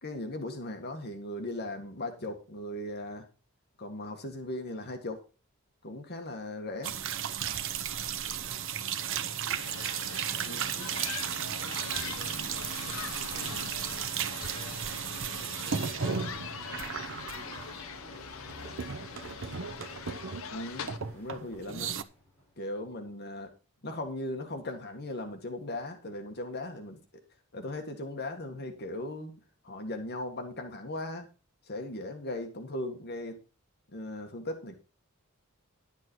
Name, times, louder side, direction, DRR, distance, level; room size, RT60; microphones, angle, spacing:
voice 1, 0.0-3.3 3.8-5.2 5.8-6.9 10.4-10.7 20.5-22.0 22.6-23.5 23.8-27.0 27.5-29.3 29.6-31.3 31.6-33.4 33.9-34.8, left 1 dB, 50° left, 5 dB, 1.8 m, -38 dB
sound 1, 6.8-18.2 18.5-20.6 20.9-22.0, right 8 dB, 65° right, 0.8 m, -35 dB
voice 2, 8.3-9.8 10.3-19.9, equal, 30° right, -1 dB, 5.8 m, -53 dB
sound 2, 9.5-21.0, left 6 dB, 70° left, 0.9 m, -42 dB
sound 3, 14.3-22.7, left 1 dB, 10° left, 6.3 m, -52 dB
11.5 x 8.1 x 4.6 m, 0.33 s
head